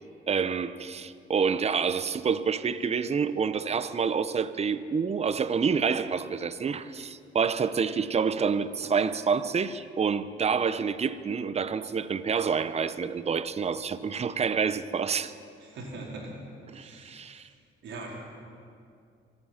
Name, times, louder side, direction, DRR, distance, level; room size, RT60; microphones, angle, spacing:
voice 1, 0.3-15.3 16.7-17.5, right 6 dB, 30° right, 0.7 m, -28 dB
voice 2, 15.6-16.3 16.7-17.5 17.8-18.1, right 2 dB, 70° right, 4.0 m, -42 dB
25.5 x 9.7 x 5.8 m
cardioid pair, 90°, 20 cm